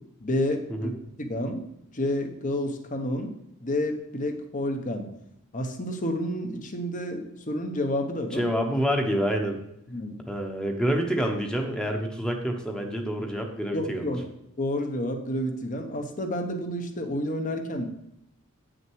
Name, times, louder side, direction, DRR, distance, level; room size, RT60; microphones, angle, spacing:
voice 1, 0.2-0.9 1.2-1.6 1.9-3.3 3.6-5.1 5.5-8.4 9.9-10.2 13.7-14.2 14.6-17.9, left 1 dB, 35° left, 5 dB, 1.0 m, -30 dB
voice 2, 8.3-9.6 10.3-14.1, equal, 5° left, 3 dB, 1.0 m, -27 dB
9.0 x 6.4 x 4.6 m, 0.82 s
head